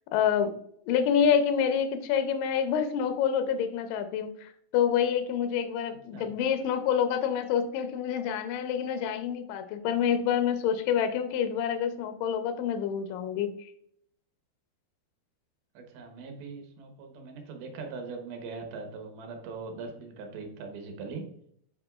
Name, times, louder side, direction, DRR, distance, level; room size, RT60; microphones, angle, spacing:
voice 1, 0.1-0.5 0.9-13.7, left 8 dB, 75° left, 8 dB, 2.1 m, -27 dB
voice 2, 15.7-21.2, right 4 dB, 75° right, 4 dB, 2.8 m, -41 dB
8.9 x 5.5 x 2.4 m, 0.68 s
omnidirectional pair, 4.6 m